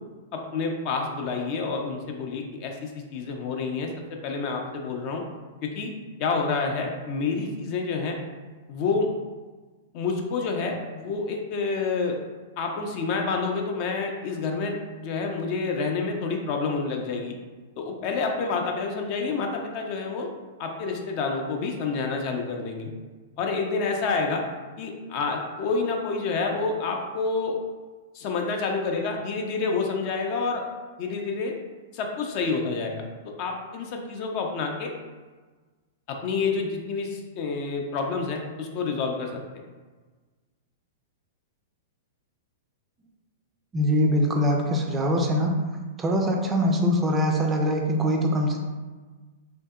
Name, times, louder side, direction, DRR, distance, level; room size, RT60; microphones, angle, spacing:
voice 1, 0.3-5.2 5.6-5.9 6.2-8.2 8.7-9.1 9.9-12.2 12.6-14.7 15.0-17.3 17.8-20.3 20.6-22.9 23.4-24.4 24.8-27.6 28.1-30.6 31.0-31.5 31.9-33.0 33.4-34.9 36.1-39.6, left 4 dB, 45° left, 2 dB, 0.4 m, -28 dB
voice 2, 43.7-45.5 46.0-48.6, equal, 20° right, 1 dB, 0.4 m, -23 dB
2.7 x 2.6 x 2.3 m, 1.3 s
hypercardioid pair, 105°, 0 cm